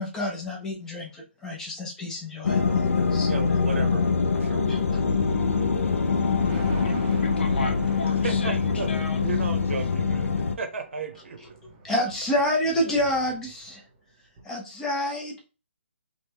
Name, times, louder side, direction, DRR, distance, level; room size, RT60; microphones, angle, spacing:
voice 1, 0.0-3.6 4.7-5.0 11.8-13.8 14.4-15.4, left 1 dB, 5° left, 0.4 m, -29 dB
sound 1, 2.4-10.6, left 5 dB, 90° left, 0.4 m, -24 dB
voice 2, 3.3-4.1 4.4-4.6 8.2-8.9 9.2-10.3 10.6-11.4, right 5 dB, 65° right, 0.8 m, -34 dB
Thunder, 5.6-14.0 14.4-14.5, right 2 dB, 20° right, 0.7 m, -44 dB
voice 3, 6.7-9.2 12.6-12.7, left 3 dB, 55° left, 0.7 m, -37 dB
3.1 x 2.1 x 3.4 m
hypercardioid pair, 160°, 7 cm